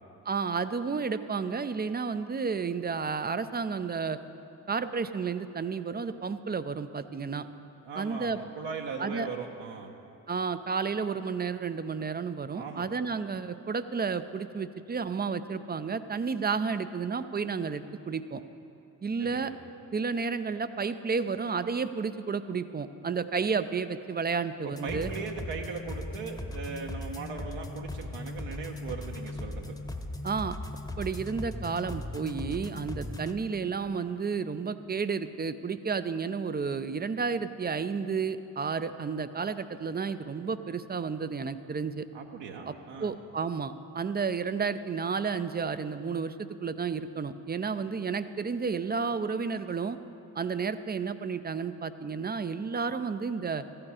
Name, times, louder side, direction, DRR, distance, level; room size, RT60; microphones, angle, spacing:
voice 1, 0.3-4.2 4.7-7.5 8.0-8.4 9.0-9.3 10.3-18.4 19.0-19.5 19.9-25.1 30.2-30.6 31.0-42.1 42.7-42.8 43.0-50.0 50.3-53.6, right 5 dB, 20° right, 12 dB, 0.5 m, -31 dB
voice 2, 7.8-9.9 12.5-12.9 19.2-19.4 24.6-29.7 42.1-43.2, right 5 dB, 70° right, 1 dB, 1.1 m, -39 dB
sound 1, 24.7-34.6, left 2 dB, 10° left, 0.9 m, -39 dB
14.5 x 8.9 x 4.9 m, 2.7 s
hypercardioid pair, 50°, 46 cm